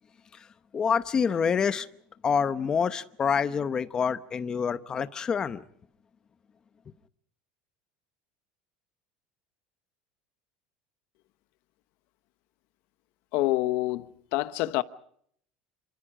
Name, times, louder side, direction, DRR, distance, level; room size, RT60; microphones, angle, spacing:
voice 1, 0.7-1.9 2.2-5.6, left 6 dB, 20° left, 0.8 m, -27 dB
voice 2, 13.3-14.8, left 17 dB, 50° left, 1.0 m, -27 dB
28.5 x 25.5 x 4.9 m
cardioid pair, 180°, 4 cm